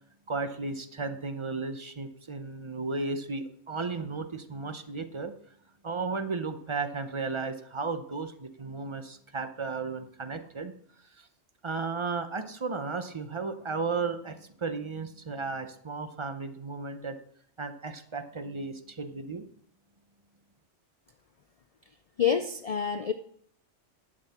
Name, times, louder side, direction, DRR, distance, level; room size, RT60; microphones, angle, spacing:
voice 1, 0.3-5.3 5.8-10.7 11.2-11.3 11.6-17.2 17.6-19.5, right 4 dB, 30° right, 9 dB, 0.7 m, -34 dB
voice 2, 22.2-23.1, left 7 dB, 75° left, 10 dB, 0.3 m, -27 dB
11.5 x 7.7 x 4.3 m, 0.65 s
omnidirectional pair, 1.2 m